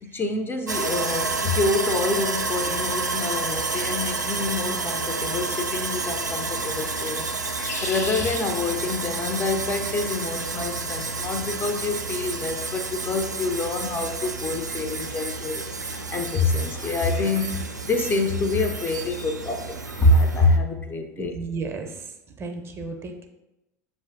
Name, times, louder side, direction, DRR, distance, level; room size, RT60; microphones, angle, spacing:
voice 1, 0.0-7.3 7.6-21.4, left 2 dB, 25° left, 6 dB, 0.4 m, -26 dB
Sawing, 0.7-20.6, right 3 dB, 85° right, 0.4 m, -30 dB
sound 1, 7.4-8.4 9.3-9.8, left 3 dB, 70° left, 0.6 m, -37 dB
voice 2, 21.2-23.3, right 4 dB, 25° right, 4 dB, 0.5 m, -34 dB
7.0 x 2.4 x 2.4 m, 0.96 s
figure-of-eight pair, 75°, 9 cm